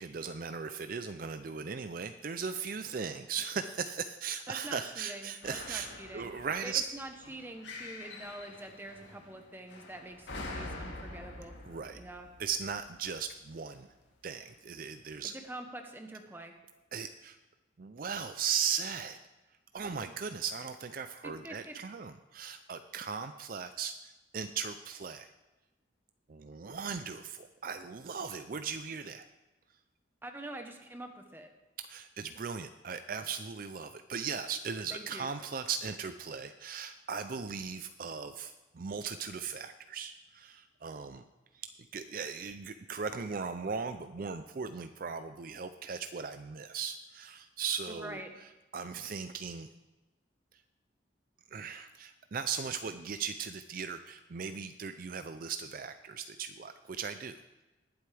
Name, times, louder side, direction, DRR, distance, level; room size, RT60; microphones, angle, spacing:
voice 1, 0.0-6.8 11.6-12.0 12.4-13.9 14.2-15.3 16.9-17.4 17.8-19.2 19.7-25.3 26.3-29.3 31.8-41.3 41.5-48.2 48.7-49.7 51.5-57.4, right 6 dB, 50° right, 9 dB, 0.4 m, -38 dB
voice 2, 4.5-6.3 6.6-11.5 11.9-12.3 15.4-16.5 21.2-21.7 30.2-31.5 34.9-35.3 47.9-48.3, right 1 dB, 10° right, 5 dB, 1.1 m, -45 dB
sound 1, 5.4-13.7 14.4-14.5, left 2 dB, 75° left, 2.0 m, -46 dB
20.0 x 7.9 x 3.4 m, 1.1 s
head